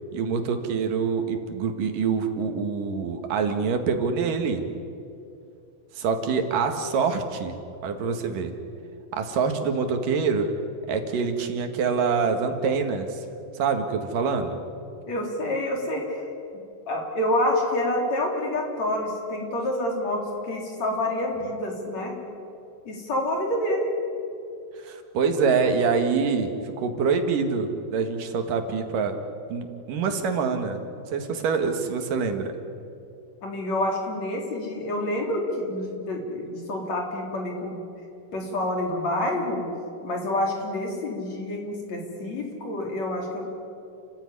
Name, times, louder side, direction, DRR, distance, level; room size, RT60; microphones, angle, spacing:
voice 1, 0.1-4.6 5.9-7.6 7.8-8.5 9.1-10.5 10.9-13.2 13.6-14.6 24.8-29.2 29.5-30.8 31.1-32.6, right 5 dB, 80° right, 6 dB, 3.5 m, -25 dB
voice 2, 15.1-16.2 16.9-22.1 22.9-23.9 33.4-37.8 38.3-39.7 40.0-43.4, left 1 dB, 55° left, 1 dB, 4.8 m, -28 dB
29.5 x 15.0 x 9.8 m, 2.5 s
omnidirectional pair, 3.7 m